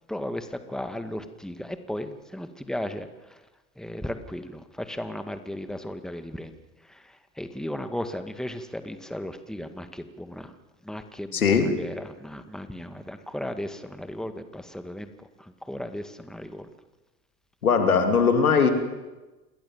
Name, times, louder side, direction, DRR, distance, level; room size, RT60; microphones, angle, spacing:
voice 1, 0.1-3.4 3.8-6.5 6.9-10.5 10.8-15.1 15.4-16.7, left 1 dB, ahead, 9 dB, 2.1 m, -35 dB
voice 2, 11.3-11.7 17.6-18.7, left 6 dB, 85° left, 6 dB, 3.1 m, -20 dB
28.0 x 20.5 x 7.5 m, 1.1 s
hypercardioid pair, 80°, 42 cm